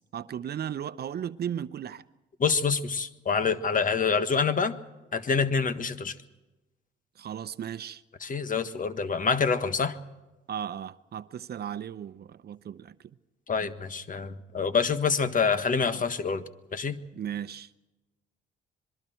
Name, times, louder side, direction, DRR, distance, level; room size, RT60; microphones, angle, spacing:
voice 1, 0.0-2.0 7.2-8.0 10.5-12.9 17.1-17.7, right 9 dB, 55° right, 0.8 m, -36 dB
voice 2, 2.4-4.8 5.1-6.1 8.2-9.9 13.5-16.4 16.7-17.0, left 5 dB, 40° left, 1.5 m, -26 dB
26.5 x 22.0 x 4.5 m
cardioid pair, 90°, 20 cm